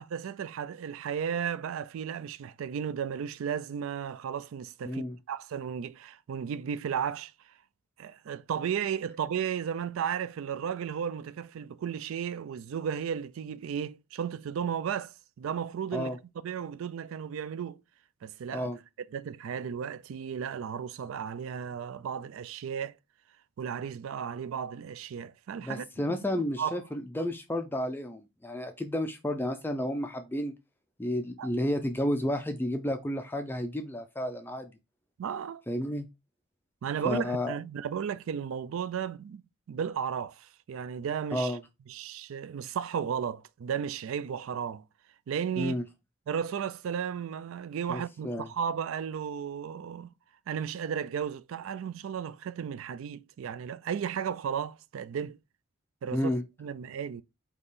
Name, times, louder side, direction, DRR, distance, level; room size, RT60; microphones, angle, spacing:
voice 1, 0.0-7.3 8.0-16.1 16.4-17.8 18.2-18.7 19.1-22.9 23.6-26.8 31.4-31.5 35.2-35.6 36.8-39.4 39.7-41.6 41.9-44.8 45.3-45.8 46.3-50.1 50.5-55.4 56.0-56.3 56.6-57.2, right 7 dB, 70° right, 0.3 m, -34 dB
voice 2, 4.8-5.2 15.9-16.2 18.5-18.8 25.6-30.5 31.0-34.7 35.7-36.1 37.0-37.5 41.3-41.6 45.6-45.8 47.9-48.5 56.1-56.4, left 1 dB, 10° left, 0.3 m, -31 dB
4.0 x 2.9 x 3.6 m
head